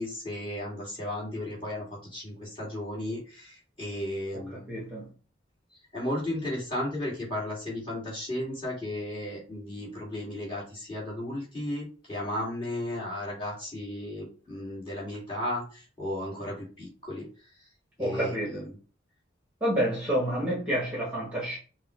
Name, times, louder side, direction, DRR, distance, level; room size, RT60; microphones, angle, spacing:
voice 1, 0.0-1.8 2.1-4.7 5.9-17.3 18.0-18.8, left 1 dB, 25° left, 1.9 m, -34 dB
voice 2, 4.3-5.1 18.0-18.7 19.6-21.6, equal, 5° right, 0.9 m, -29 dB
5.4 x 2.2 x 3.0 m
head